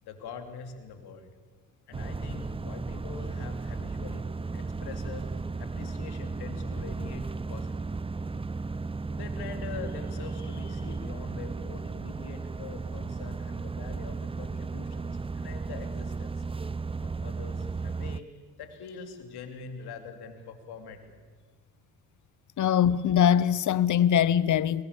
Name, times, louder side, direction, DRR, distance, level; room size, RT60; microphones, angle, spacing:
voice 1, 0.0-1.3 1.9-8.0 8.3-8.4 9.1-16.4 17.0-21.1, left 5 dB, 70° left, 3.2 m, -44 dB
sound 1, 1.9-18.2, right 4 dB, 15° right, 0.6 m, -35 dB
voice 2, 22.6-24.8, left 9 dB, 50° left, 1.0 m, -22 dB
23.0 x 20.0 x 8.6 m
hypercardioid pair, 55°, 40 cm